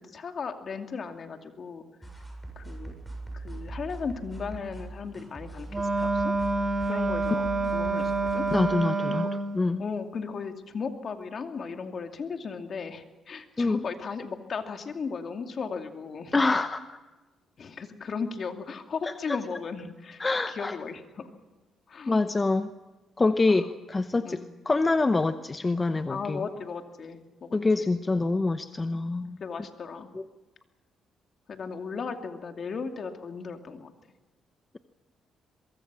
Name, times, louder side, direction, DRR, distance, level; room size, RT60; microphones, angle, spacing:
voice 1, 0.0-1.8 2.6-2.9 3.3-6.3 6.9-8.5 9.2-9.3 9.8-16.3 17.6-21.2 21.9-22.2 23.5-23.7 24.2-24.5 26.1-27.9 29.4-30.2 31.5-33.9, left 5 dB, 50° left, 5 dB, 2.5 m, -36 dB
sound 1, 2.0-8.7, right 2 dB, 5° right, 7.8 m, -41 dB
Wind instrument woodwind instrument, 5.7-9.6, right 3 dB, 25° right, 2.6 m, -27 dB
voice 2, 8.5-9.3 9.5-9.8 13.6-13.8 16.3-17.0 19.0-19.4 20.2-20.7 22.1-22.7 23.2-24.4 24.7-26.4 27.5-29.4 30.1-30.2, left 3 dB, 25° left, 10 dB, 0.9 m, -25 dB
23.0 x 23.0 x 6.2 m, 1.2 s
cardioid pair, 90°, 0 cm